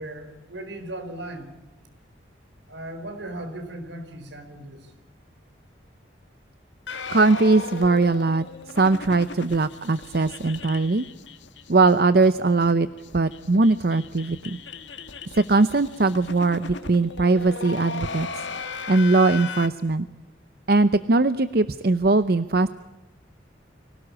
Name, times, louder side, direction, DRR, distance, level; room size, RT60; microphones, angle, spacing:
voice 1, 0.0-1.5 2.7-4.9, right 1 dB, 75° right, 7 dB, 4.5 m, -37 dB
sound 1, 6.9-12.0 12.2-12.3 12.6-12.7 13.0-19.7, left 4 dB, 80° left, 1.9 m, -37 dB
voice 2, 7.1-8.4 8.7-11.0 11.7-12.9 13.1-14.6 15.3-18.3 18.9-20.1 20.7-22.7, right 3 dB, 55° right, 13 dB, 0.7 m, -20 dB
24.5 x 18.0 x 8.5 m, 1.1 s
head